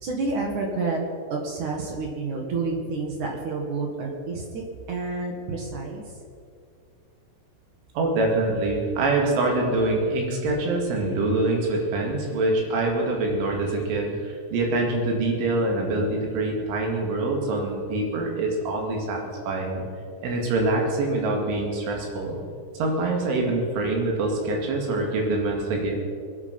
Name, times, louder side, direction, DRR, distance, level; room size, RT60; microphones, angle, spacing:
voice 1, 0.0-1.0 1.3-4.6 4.9-6.2, right 3 dB, 55° right, 0 dB, 2.2 m, -29 dB
voice 2, 7.9-19.8 20.2-22.4 22.7-26.0, right 2 dB, 75° right, 1 dB, 4.7 m, -25 dB
23.5 x 9.6 x 5.5 m, 2.2 s
omnidirectional pair, 5.7 m